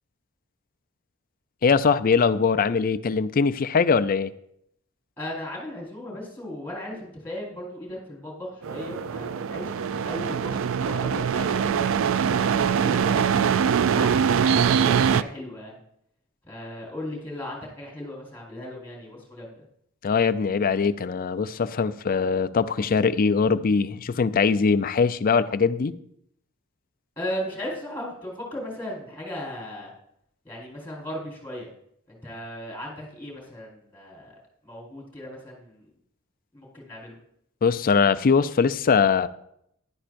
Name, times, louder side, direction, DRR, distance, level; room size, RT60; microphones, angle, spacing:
voice 1, 1.6-4.3 20.0-26.0 37.6-39.3, left 5 dB, 40° left, 14 dB, 0.4 m, -22 dB
voice 2, 5.2-12.0 12.4-15.8 16.4-19.6 27.2-29.9 30.4-31.7 32.1-34.4 34.6-35.9 36.5-37.2, left 1 dB, 10° left, -4 dB, 4.5 m, -37 dB
sound 1, 8.6-15.2, right 7 dB, 65° right, 0.4 m, -23 dB
14.5 x 11.5 x 2.6 m, 0.73 s
head